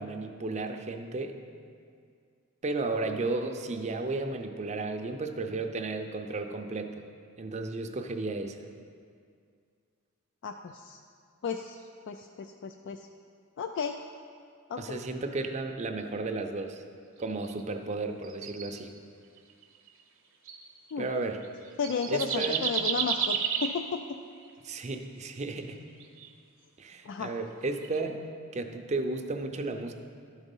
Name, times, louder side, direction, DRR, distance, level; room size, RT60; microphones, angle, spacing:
voice 1, 0.0-1.4 2.6-7.1 7.4-8.6 14.8-16.8 17.2-18.9 21.0-21.4 22.1-22.7 24.6-25.8 26.8-28.2 28.5-29.9, right 3 dB, 30° right, 5 dB, 0.5 m, -33 dB
voice 2, 10.4-11.0 11.4-11.8 12.1-13.1 13.6-14.0 14.7-15.0 20.9-21.1 21.8-24.0 27.0-27.3, left 5 dB, 55° left, 5 dB, 0.3 m, -33 dB
sound 1, 17.4-17.6 18.2-18.7 19.6-19.9 20.5-20.6 21.4-21.5 21.8-23.8 26.0-26.3 27.8-28.0, right 7 dB, 65° right, 0.8 m, -31 dB
12.0 x 4.0 x 5.4 m, 2.2 s
head